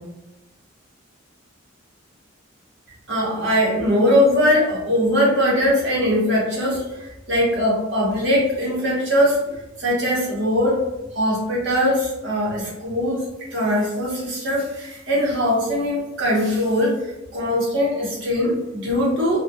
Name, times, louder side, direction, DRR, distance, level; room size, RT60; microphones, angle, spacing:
voice 1, 3.1-10.9 11.1-13.2 13.5-17.1 17.3-19.4, equal, 65° right, -5 dB, 1.0 m, -21 dB
2.2 x 2.2 x 2.7 m, 0.98 s
head